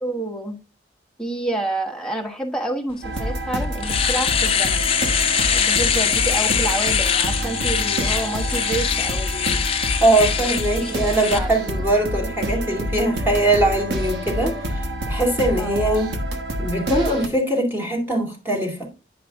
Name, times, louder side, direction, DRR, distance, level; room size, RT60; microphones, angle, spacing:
voice 1, 0.0-0.6 1.2-4.9 5.5-9.7 10.4-10.5 10.8-11.5 15.6-16.0, right 2 dB, 5° left, 1.2 m, -29 dB
sound 1, 3.0-17.3, equal, 75° right, 1.2 m, -27 dB
Domestic sounds home sounds, 3.2-3.3 3.6-11.4, left 8 dB, 30° left, 0.7 m, -23 dB
voice 2, 10.0-16.1 16.6-18.9, right 1 dB, 10° right, 2.2 m, -21 dB
9.6 x 5.1 x 3.5 m
head